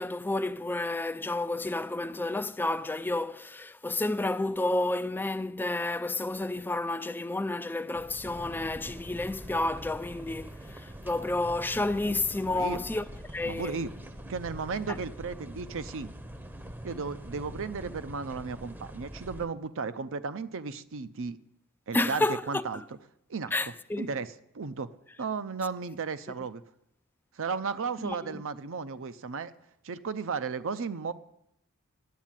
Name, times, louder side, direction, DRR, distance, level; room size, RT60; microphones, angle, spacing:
voice 1, 0.0-13.0 13.3-13.8 14.9-15.0 21.9-22.8 23.5-24.1 28.0-28.4, left 2 dB, 10° left, 0.4 m, -31 dB
sound 1, 7.9-19.5, right 1 dB, 10° right, 0.8 m, -44 dB
voice 2, 12.5-12.8 13.4-13.9 14.3-16.1 16.8-21.4 21.9-22.8 23.3-23.5 24.0-24.9 25.2-26.6 27.4-29.5 29.8-31.1, right 5 dB, 60° right, 0.6 m, -34 dB
10.5 x 8.4 x 9.0 m
head